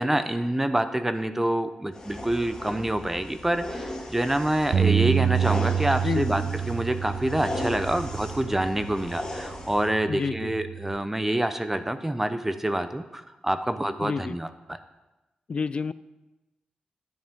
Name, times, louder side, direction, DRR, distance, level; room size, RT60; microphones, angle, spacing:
voice 1, 0.0-14.8, right 1 dB, 10° right, 10 dB, 0.6 m, -27 dB
sound 1, 1.9-9.9, left 1 dB, 25° left, 2.1 m, -37 dB
Bass guitar, 4.7-9.2 9.8-11.0, right 8 dB, 60° right, 0.4 m, -28 dB
voice 2, 14.0-14.4 15.5-15.9, left 5 dB, 45° left, 16 dB, 0.3 m, -28 dB
10.5 x 9.1 x 3.6 m, 1.0 s
wide cardioid pair, 115°, 3 cm